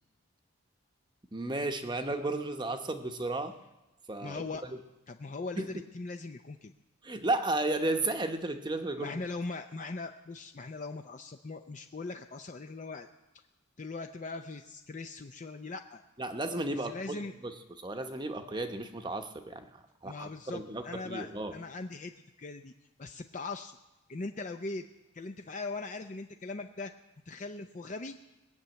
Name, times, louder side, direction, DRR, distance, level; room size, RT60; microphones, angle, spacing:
voice 1, 1.3-3.5 4.1-4.8 5.6-5.7 7.0-9.2 16.2-16.9 17.4-17.5 17.8-21.5, right 2 dB, 20° right, 6 dB, 0.8 m, -33 dB
voice 2, 4.2-4.6 5.1-6.7 9.0-13.1 13.8-16.0 16.8-17.3 20.0-22.1 22.4-22.7 23.0-23.8 24.1-24.8 25.1-26.9 27.3-28.2, left 3 dB, 35° left, 6 dB, 0.5 m, -40 dB
20.5 x 6.9 x 9.0 m, 1.0 s
head